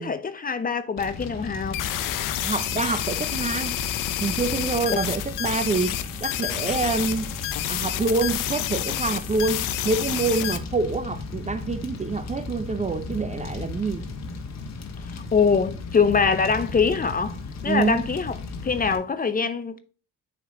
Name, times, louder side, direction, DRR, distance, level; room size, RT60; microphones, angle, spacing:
voice 1, 0.0-1.8 15.3-17.4 17.6-18.4 18.6-19.8, left 5 dB, 25° left, 0.6 m, -23 dB
Fire, 1.0-19.0, left 3 dB, 55° left, 1.2 m, -36 dB
sound 1, 1.7-10.6, left 13 dB, 70° left, 0.6 m, -29 dB
voice 2, 2.4-3.8 4.2-5.9 6.2-7.4 7.7-14.0 17.7-18.0, right 4 dB, 20° right, 0.4 m, -26 dB
8.6 x 3.1 x 3.7 m
supercardioid pair, 70°, 33 cm